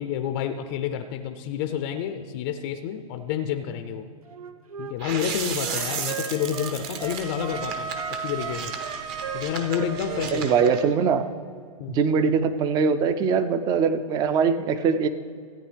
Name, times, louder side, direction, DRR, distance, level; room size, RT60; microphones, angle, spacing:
voice 1, 0.0-4.1 4.8-7.9 8.2-8.7 9.3-10.6 11.8-12.0, left 9 dB, 40° left, 8 dB, 0.4 m, -29 dB
Wind instrument woodwind instrument, 4.3-7.7 7.9-11.2, right 6 dB, 90° right, 0.7 m, -37 dB
sound 1, 5.0-10.8, right 6 dB, 40° right, 0.9 m, -35 dB
Wind instrument woodwind instrument 2, 5.8-10.9, right 6 dB, 75° right, 1.1 m, -36 dB
voice 2, 10.3-11.2 11.9-15.1, right 6 dB, 20° right, 12 dB, 0.4 m, -22 dB
14.5 x 8.9 x 3.4 m, 2.2 s
hypercardioid pair, 135°, 18 cm